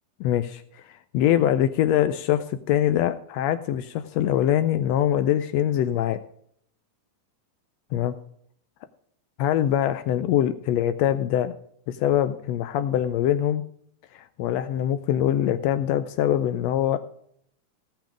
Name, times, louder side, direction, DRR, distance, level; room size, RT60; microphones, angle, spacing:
voice 1, 0.2-6.2 7.9-8.2 9.4-11.5 11.9-13.6 14.1-17.0, left 11 dB, 80° left, 11 dB, 1.5 m, -23 dB
17.0 x 6.0 x 5.0 m, 0.67 s
omnidirectional pair, 3.4 m